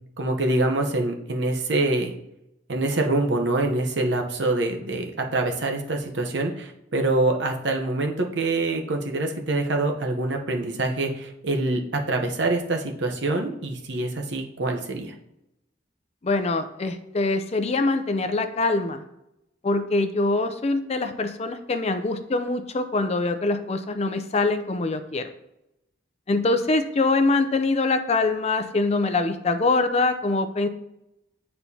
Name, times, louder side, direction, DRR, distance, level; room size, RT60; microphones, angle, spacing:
voice 1, 0.2-2.1 2.7-15.1, right 2 dB, 75° right, 3 dB, 0.9 m, -25 dB
voice 2, 16.2-19.0 19.6-25.3 26.3-30.7, left 3 dB, 35° left, 8 dB, 0.5 m, -24 dB
8.9 x 4.3 x 2.8 m, 0.85 s
head